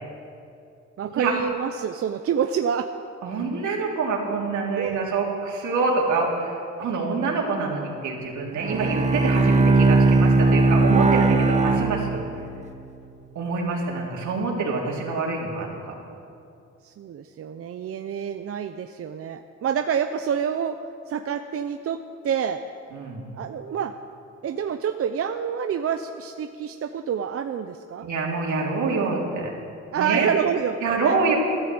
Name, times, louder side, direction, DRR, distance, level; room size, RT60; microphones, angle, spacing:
voice 1, 1.0-2.9 4.8-5.0 16.8-20.8 21.1-22.6 23.3-23.9 24.4-28.1 29.9-31.2, right 8 dB, 50° right, 7 dB, 0.6 m, -27 dB
voice 2, 3.2-12.3 13.4-15.7 22.9-23.2 28.0-29.5 29.9-30.3 30.8-31.4, right 4 dB, 75° right, -2 dB, 3.4 m, -26 dB
Bowed string instrument, 8.6-12.7, right 3 dB, 25° right, 0.9 m, -19 dB
13.5 x 12.5 x 7.8 m, 2.5 s
cardioid pair, 90°, 30 cm